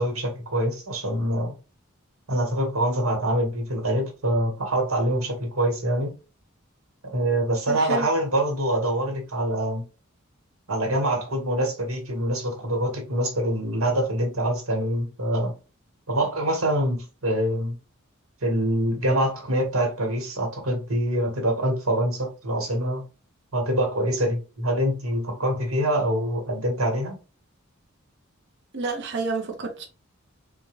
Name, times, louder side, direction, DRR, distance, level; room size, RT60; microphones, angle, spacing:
voice 1, 0.0-1.5 2.3-6.1 7.0-9.8 10.7-15.5 16.1-17.7 18.4-23.0 23.5-27.1, right 1 dB, 80° right, 1.6 m, -25 dB
voice 2, 7.7-8.1 28.7-29.9, right 3 dB, 55° right, 0.8 m, -29 dB
4.2 x 2.3 x 3.2 m
head